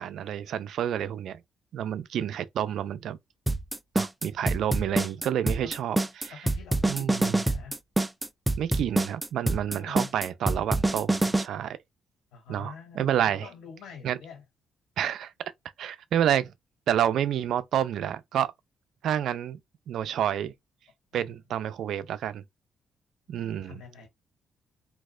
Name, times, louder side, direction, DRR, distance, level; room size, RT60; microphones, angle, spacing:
voice 1, 0.0-1.4 1.7-3.2 3.9-6.4 6.9-7.4 8.6-11.8 12.5-13.5 14.0-14.2 15.0-15.3 15.8-16.5 16.9-18.5 19.0-19.6 19.9-20.5 21.1-22.4 23.3-23.8, right 10 dB, 75° right, 0.4 m, -29 dB
sound 1, 3.5-11.4, right 2 dB, 10° right, 0.4 m, -26 dB
voice 2, 6.3-7.7 9.7-10.1 12.3-14.4 21.1-21.4 23.3-24.1, left 7 dB, 85° left, 2.1 m, -46 dB
4.0 x 2.8 x 2.5 m
cardioid pair, 90°, 0 cm